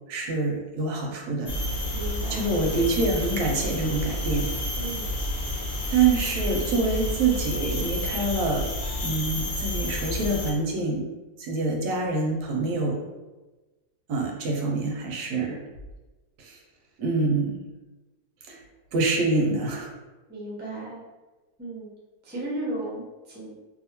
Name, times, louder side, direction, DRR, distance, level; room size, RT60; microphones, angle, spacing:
voice 1, 0.1-1.5 2.3-4.5 5.9-8.7 9.0-11.0 11.4-13.0 14.1-15.6 16.4-16.6 17.0-17.6 18.5-18.6 18.9-19.9, right 3 dB, 80° right, 1 dB, 1.1 m, -26 dB
sound 1, 1.5-10.5, left 1 dB, 50° left, 0.9 m, -30 dB
voice 2, 1.9-2.5 4.8-5.1 20.3-21.0 21.6-21.9 22.2-23.5, right 2 dB, 15° right, -5 dB, 0.3 m, -35 dB
2.7 x 2.5 x 2.8 m, 1.2 s
omnidirectional pair, 1.7 m